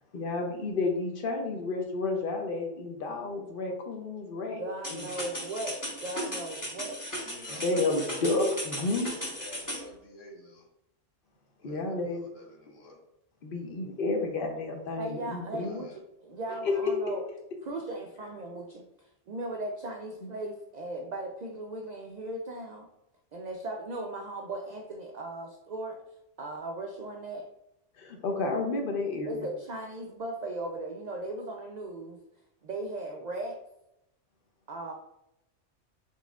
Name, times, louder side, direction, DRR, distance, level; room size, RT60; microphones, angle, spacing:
voice 1, 0.1-4.6 4.9-5.0 7.5-9.1 11.6-12.3 13.4-15.8 16.6-16.7 20.2-20.3 28.0-29.3, left 3 dB, 50° left, 3 dB, 0.9 m, -31 dB
voice 2, 4.4-7.0 15.0-17.2 17.6-22.9 23.3-26.0 26.4-27.5 29.3-32.2 32.6-33.6 34.7-34.9, right 2 dB, 75° right, 2 dB, 0.4 m, -37 dB
sound 1, 4.8-9.8, equal, 15° left, 0.9 m, -37 dB
voice 3, 4.9-5.6 5.9-6.1 7.2-8.2 8.4-10.7 11.6-13.0 15.6-16.0, left 1 dB, 85° left, 0 dB, 1.3 m, -50 dB
4.2 x 3.9 x 2.4 m, 0.84 s
omnidirectional pair, 1.3 m